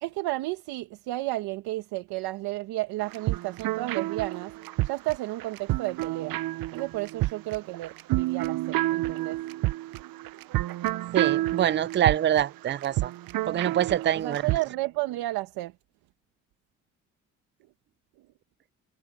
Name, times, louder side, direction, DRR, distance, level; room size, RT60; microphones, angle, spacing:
voice 1, 0.0-4.5 4.8-6.4 6.7-9.4 14.1-15.7, right 18 dB, 85° right, 1.5 m, -32 dB
sound 1, 3.0-14.7, right 17 dB, 70° right, 0.6 m, -29 dB
voice 2, 11.1-13.1 13.5-14.4, right 10 dB, 30° right, 0.4 m, -25 dB
supercardioid pair, 55°, 37 cm